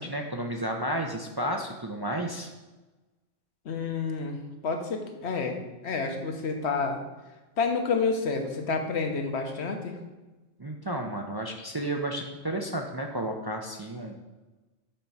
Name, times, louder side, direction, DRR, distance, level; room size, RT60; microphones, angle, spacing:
voice 1, 0.0-2.5 10.6-14.1, right 1 dB, 30° right, 2 dB, 0.4 m, -32 dB
voice 2, 3.6-4.4 4.6-7.0 7.6-10.0, left 4 dB, 65° left, 4 dB, 1.2 m, -29 dB
7.4 x 4.5 x 5.4 m, 1.1 s
omnidirectional pair, 1.2 m